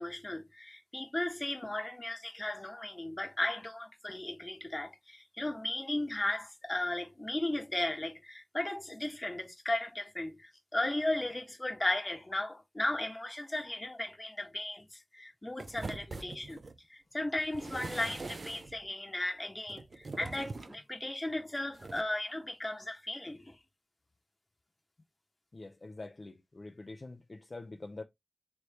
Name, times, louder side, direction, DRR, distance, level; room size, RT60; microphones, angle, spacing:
voice 1, 0.0-16.6 16.9-23.6, left 1 dB, 25° left, 1.3 m, -36 dB
sound 1, 15.6-16.8 17.4-18.8 19.7-20.8 21.7-22.0, right 3 dB, 65° right, 0.5 m, -43 dB
voice 2, 25.5-28.0, left 2 dB, 50° left, 0.5 m, -45 dB
3.2 x 3.2 x 4.1 m
cardioid pair, 45°, 0 cm